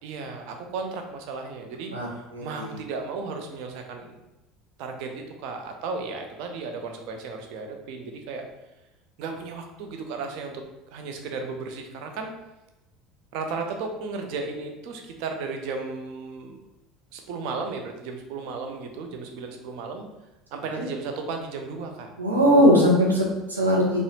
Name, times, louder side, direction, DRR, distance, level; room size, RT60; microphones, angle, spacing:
voice 1, 0.0-2.1 2.4-4.2 4.8-8.5 9.2-10.6 10.9-12.3 13.3-16.6 17.1-20.1 20.5-22.1, right 4 dB, 55° right, 4 dB, 0.5 m, -34 dB
voice 2, 1.9-2.7 20.7-20.8 22.2-24.0, equal, 80° right, -3 dB, 0.8 m, -20 dB
3.9 x 2.5 x 2.9 m, 0.97 s
figure-of-eight pair, 65°, 0 cm